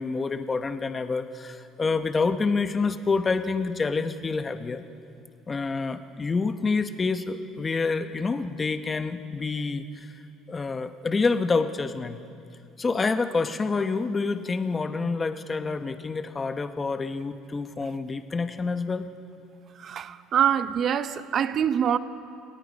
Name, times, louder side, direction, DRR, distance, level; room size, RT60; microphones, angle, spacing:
voice 1, 0.0-4.8 5.5-9.9 10.5-12.2 12.8-19.1, left 4 dB, 20° left, 0.8 m, -27 dB
voice 2, 19.8-22.0, right 9 dB, 35° right, 0.7 m, -24 dB
29.0 x 17.5 x 5.2 m
cardioid pair, 155°, 0 cm